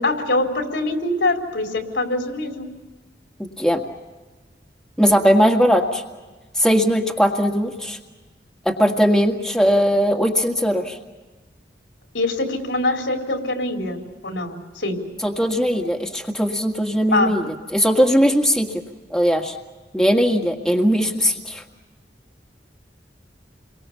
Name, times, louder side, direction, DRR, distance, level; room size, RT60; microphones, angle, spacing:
voice 1, 0.0-2.7 12.1-15.0 17.1-17.3, left 2 dB, 85° left, 2 dB, 4.0 m, -23 dB
voice 2, 3.4-3.8 5.0-6.0 6.6-8.0 8.7-11.0 15.2-17.5 17.7-18.7 19.1-19.6 19.9-21.6, equal, 5° left, 1 dB, 1.8 m, -19 dB
29.5 x 23.0 x 7.0 m, 1.3 s
head